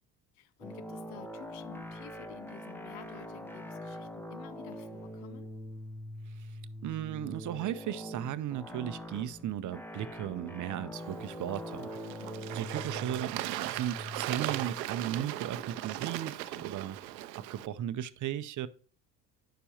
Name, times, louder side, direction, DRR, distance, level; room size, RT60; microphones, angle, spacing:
voice 1, 0.3-5.5 12.0-12.5, left 11 dB, 70° left, 1.0 m, -51 dB
sound 1, 0.6-17.1, equal, 5° left, 0.9 m, -44 dB
voice 2, 6.8-12.1 12.5-17.0 17.3-18.7, right 11 dB, 40° right, 0.6 m, -36 dB
Bird / Water, 11.0-17.7, right 15 dB, 90° right, 0.6 m, -38 dB
10.0 x 6.9 x 2.9 m
hypercardioid pair, 80°, 49 cm